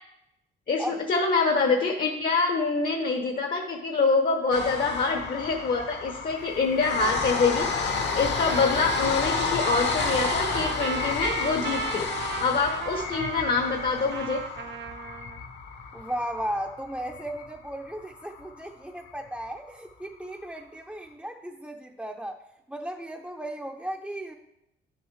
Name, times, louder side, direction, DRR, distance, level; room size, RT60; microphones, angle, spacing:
voice 1, 0.7-12.1 12.4-14.4, left 4 dB, 50° left, 3 dB, 1.0 m, -25 dB
sound 1, 4.5-18.6 19.0-19.1 19.4-19.5, left 5 dB, 65° left, 1.3 m, -31 dB
Trumpet, 8.4-15.4, right 9 dB, 65° right, 0.6 m, -36 dB
voice 2, 15.9-22.4 22.7-24.4, right 1 dB, 5° right, 1 dB, 0.6 m, -35 dB
10.0 x 7.1 x 3.2 m, 0.87 s
cardioid pair, 90°, 20 cm